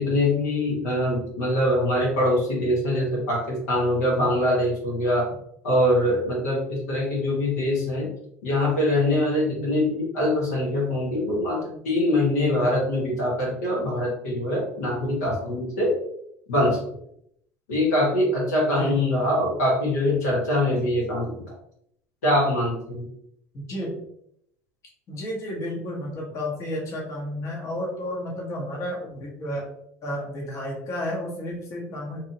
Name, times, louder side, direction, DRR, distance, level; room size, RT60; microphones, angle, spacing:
voice 1, 0.0-5.2 5.6-8.1 8.4-15.9 16.5-16.8 17.7-21.4 22.2-23.1, left 1 dB, 75° left, -3 dB, 1.1 m, -23 dB
voice 2, 23.5-24.0 25.1-29.7 30.0-32.2, left 1 dB, 40° left, -2 dB, 1.1 m, -32 dB
2.9 x 2.6 x 2.7 m, 0.73 s
hypercardioid pair, 75°, 8 cm